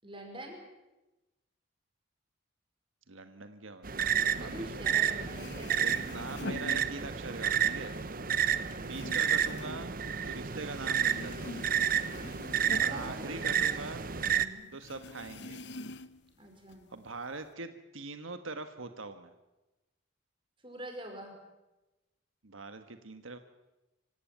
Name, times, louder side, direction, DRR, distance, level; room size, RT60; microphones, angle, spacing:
voice 1, 0.0-0.6 4.3-6.2 12.8-13.9 14.3-14.7 16.4-16.9 20.6-21.3, right 1 dB, 25° right, 3 dB, 5.4 m, -46 dB
voice 2, 3.1-4.1 4.4-5.0 5.8-7.9 8.9-9.9 10.2-11.6 12.8-14.0 14.7-15.6 16.9-19.3 22.4-23.4, right 3 dB, 85° right, 9 dB, 1.4 m, -42 dB
sound 1, 3.8-14.5, right 8 dB, 45° right, 0.9 m, -31 dB
sound 2, 4.9-5.0 5.2-7.4 7.8-10.7 11.0-14.0 14.3-14.4 14.8-16.3 16.7-17.5, left 2 dB, 55° left, 0.9 m, -45 dB
25.5 x 16.5 x 9.3 m, 1.0 s
head